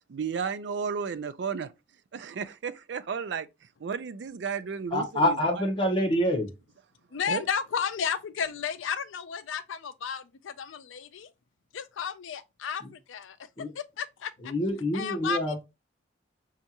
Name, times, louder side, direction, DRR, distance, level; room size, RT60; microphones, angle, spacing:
voice 1, 0.1-1.7 2.1-3.5 3.8-5.6 7.3-7.4, right 6 dB, 65° right, 0.4 m, -33 dB
voice 2, 4.9-6.5 12.8-12.9 13.6-13.7 14.4-15.6, left 1 dB, 25° left, 0.9 m, -26 dB
voice 3, 7.1-11.3 11.7-14.5 14.9-15.6, left 7 dB, 90° left, 0.4 m, -33 dB
5.3 x 2.4 x 2.8 m
head